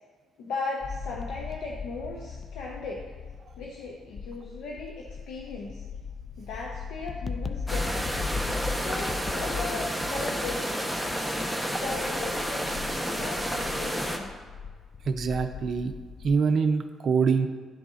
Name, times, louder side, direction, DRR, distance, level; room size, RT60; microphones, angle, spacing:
voice 1, 0.4-3.1 3.6-5.8 6.4-8.2 8.7-10.8 11.8-12.7 13.2-14.3, left 3 dB, 85° left, -1 dB, 0.7 m, -37 dB
sound 1, 0.8-16.4, left 5 dB, 35° left, 0.3 m, -38 dB
sound 2, 7.7-14.2, equal, 10° left, 0.8 m, -30 dB
voice 2, 15.0-15.9 16.2-17.5, right 5 dB, 55° right, 5 dB, 0.5 m, -24 dB
11.0 x 3.8 x 2.4 m, 1.5 s
cardioid pair, 90°, 0 cm